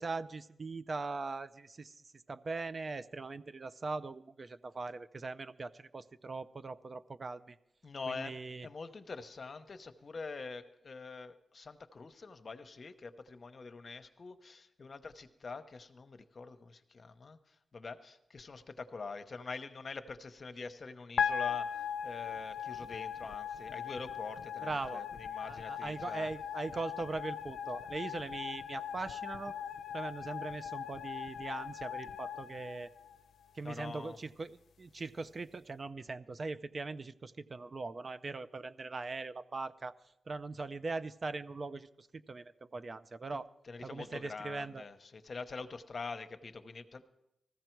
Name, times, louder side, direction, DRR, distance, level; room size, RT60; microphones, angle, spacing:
voice 1, 0.0-2.0 2.3-7.6 8.1-8.7 24.6-25.0 25.4-29.5 29.9-32.9 33.5-39.9 40.3-43.5 43.8-44.9, right 3 dB, 35° right, 13 dB, 0.5 m, -41 dB
voice 2, 7.8-26.3 33.6-34.2 43.3-47.1, left 4 dB, 45° left, 10 dB, 0.9 m, -45 dB
sound 1, 21.2-33.5, left 8 dB, 75° left, 0.5 m, -39 dB
19.0 x 15.0 x 4.5 m, 0.87 s
cardioid pair, 100°, 0 cm